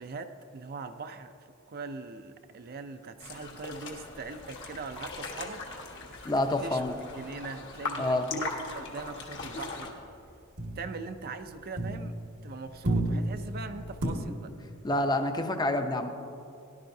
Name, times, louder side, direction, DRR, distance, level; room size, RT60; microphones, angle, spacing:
voice 1, 0.0-1.3 1.7-5.6 6.1-6.2 6.5-6.8 7.1-10.0 10.8-12.1 12.4-14.6, right 4 dB, 45° right, 8 dB, 0.5 m, -41 dB
sound 1, 3.2-9.9, left 3 dB, 55° left, 1.4 m, -39 dB
sound 2, 4.1-7.6 7.9-8.3 8.5-12.4 12.7-14.1, right 1 dB, 90° right, 1.7 m, -35 dB
voice 2, 6.2-6.9 8.0-8.3 14.8-16.1, left 1 dB, 20° left, 6 dB, 0.6 m, -27 dB
17.5 x 11.0 x 2.7 m, 2.5 s
head